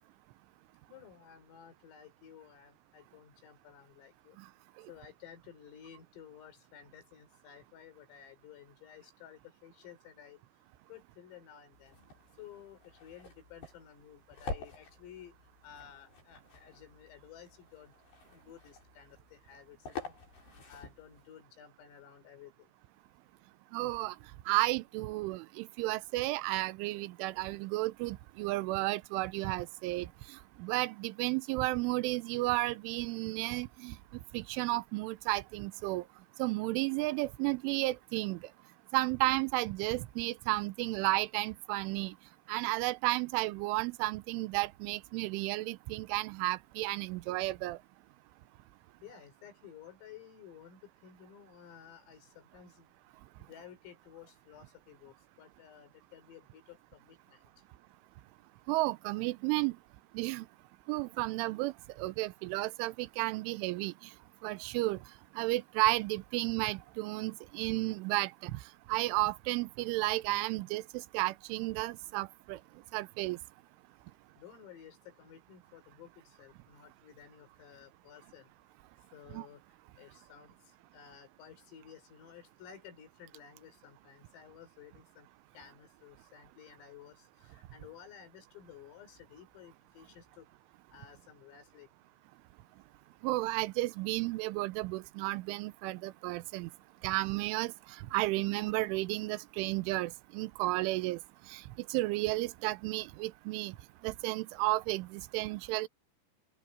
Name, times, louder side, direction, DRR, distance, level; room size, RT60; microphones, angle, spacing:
voice 1, 0.9-4.4 4.9-10.4 10.9-12.0 12.4-15.4 15.6-17.9 18.3-20.1 20.4-22.7 49.0-53.0 53.4-57.5 74.4-78.5 79.1-79.6 80.0-85.3 85.5-90.5 90.9-91.9, left 9 dB, 90° left, 7.6 m, -54 dB
sound 1, 11.7-21.3, left 4 dB, 55° left, 9.1 m, -48 dB
voice 2, 23.7-24.2 24.5-34.0 34.3-36.0 36.4-38.4 38.9-42.1 42.5-47.8 58.7-59.8 60.1-60.5 60.9-64.1 64.4-65.0 65.4-68.6 68.9-72.6 72.9-73.4 79.3-79.5 93.2-96.7 97.0-101.2 101.5-103.8 104.0-105.9, right 20 dB, 80° right, 3.1 m, -33 dB
open air
omnidirectional pair, 5.8 m